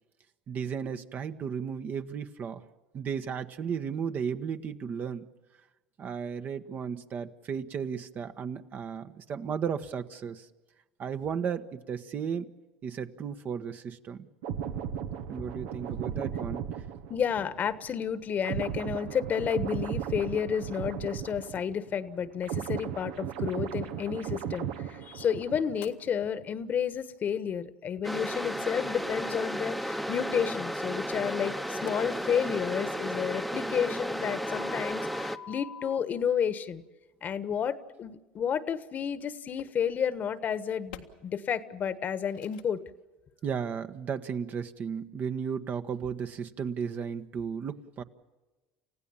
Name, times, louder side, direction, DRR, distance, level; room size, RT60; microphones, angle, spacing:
voice 1, 0.5-2.6 2.9-5.3 6.0-10.5 11.0-12.5 12.8-14.3 15.3-16.7 43.4-48.0, right 7 dB, 45° right, 8 dB, 1.3 m, -34 dB
sound 1, 14.4-21.9 22.2-25.9 26.2-26.4, right 9 dB, 75° right, 1.2 m, -36 dB
voice 2, 17.1-36.8 37.2-42.8, left 8 dB, 40° left, 13 dB, 1.3 m, -31 dB
sound 2, 25.8-25.9 28.2-28.3 29.3-29.4 30.2-30.6 31.6-31.9 34.5-36.0 38.4-38.5 39.6-39.8 40.9-41.0 41.8-42.1 42.3-42.6, left 8 dB, 90° left, 1.7 m, -44 dB
sound 3, 28.0-35.4, equal, ahead, 1.0 m, -33 dB
29.5 x 16.0 x 7.2 m, 1.2 s
hypercardioid pair, 85°, 4 cm